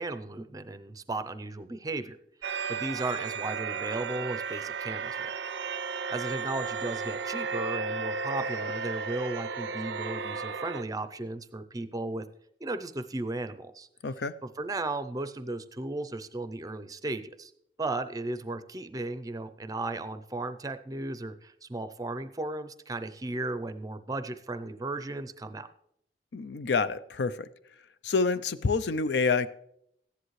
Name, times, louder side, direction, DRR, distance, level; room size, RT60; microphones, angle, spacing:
voice 1, 0.0-2.2 2.7-5.3 6.1-12.3 12.6-13.9 14.4-17.5 17.8-25.7, right 2 dB, 20° right, 11 dB, 0.5 m, -35 dB
sound 1, 2.4-10.8, right 5 dB, 75° right, 0.5 m, -34 dB
voice 2, 14.0-14.3 26.3-27.5 28.0-29.5, left 4 dB, 70° left, 14 dB, 0.5 m, -27 dB
14.5 x 10.5 x 3.2 m, 0.73 s
head